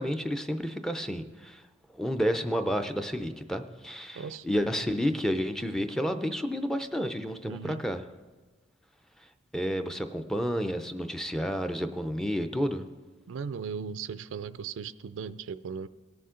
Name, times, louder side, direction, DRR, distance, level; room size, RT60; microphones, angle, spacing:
voice 1, 0.0-1.6 1.9-8.0 9.5-12.9, equal, 5° left, 8 dB, 0.5 m, -30 dB
voice 2, 4.1-4.5 7.4-7.8 13.3-15.9, right 6 dB, 85° right, 15 dB, 0.4 m, -37 dB
18.0 x 7.0 x 3.7 m, 1.3 s
head